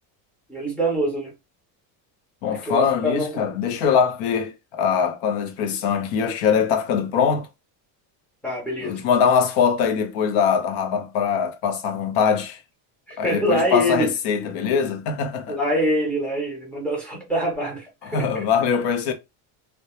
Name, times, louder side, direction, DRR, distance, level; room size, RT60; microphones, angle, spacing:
voice 1, 0.5-1.3 2.5-3.4 8.4-9.0 13.1-14.1 15.5-18.5, equal, 5° left, 0.3 m, -25 dB
voice 2, 2.4-7.5 8.8-12.6 13.2-15.6 18.0-19.1, left 7 dB, 85° left, 0.8 m, -22 dB
2.2 x 2.0 x 2.9 m
cardioid pair, 170°, 49 cm